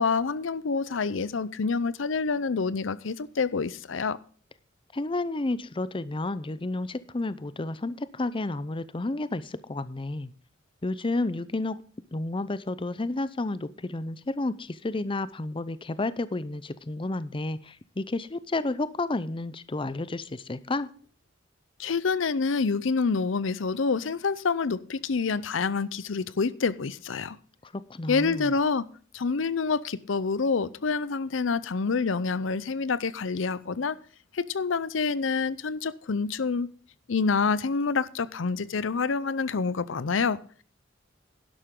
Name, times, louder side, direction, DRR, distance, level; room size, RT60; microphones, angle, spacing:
voice 1, 0.0-4.2 21.8-27.4 28.1-28.8 29.1-34.0 34.3-36.7 37.1-40.4, left 4 dB, 75° left, 0.6 m, -27 dB
voice 2, 4.9-10.3 10.8-11.8 12.1-20.9 27.6-28.5, left 2 dB, 25° left, 0.6 m, -31 dB
11.5 x 11.5 x 3.7 m
head